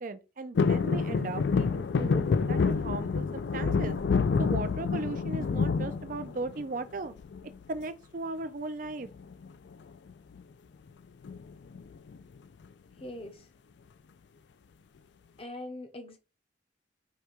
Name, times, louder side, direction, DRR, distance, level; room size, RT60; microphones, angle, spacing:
voice 1, 0.0-3.3 3.5-4.0 4.4-7.1 7.7-9.1, right 3 dB, 45° right, 0.4 m, -37 dB
sound 1, 0.6-6.7 7.2-7.8 9.1-9.5 9.7-9.8 10.1-10.4 11.2-12.2 12.6-12.7, left 5 dB, 65° left, 0.3 m, -28 dB
voice 2, 13.0-13.5 15.4-16.2, left 1 dB, 30° left, 0.7 m, -41 dB
4.9 x 2.3 x 4.4 m
head